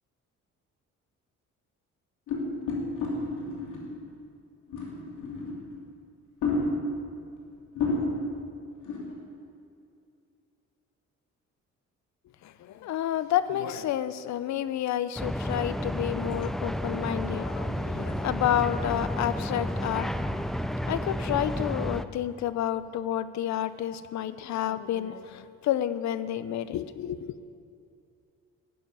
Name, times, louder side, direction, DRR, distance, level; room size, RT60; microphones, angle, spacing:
sound 1, 2.3-4.0 4.7-5.8 6.4-7.0 7.5-7.6 7.7-8.4 8.8-9.1, left 2 dB, 85° left, 2.8 m, -31 dB
voice 1, 12.4-20.5 20.8-27.4, left 11 dB, 65° left, 14 dB, 0.6 m, -30 dB
sound 2, 15.2-22.1, equal, ahead, 0.4 m, -31 dB
12.5 x 6.9 x 9.5 m, 2.5 s
cardioid pair, 90°, 30 cm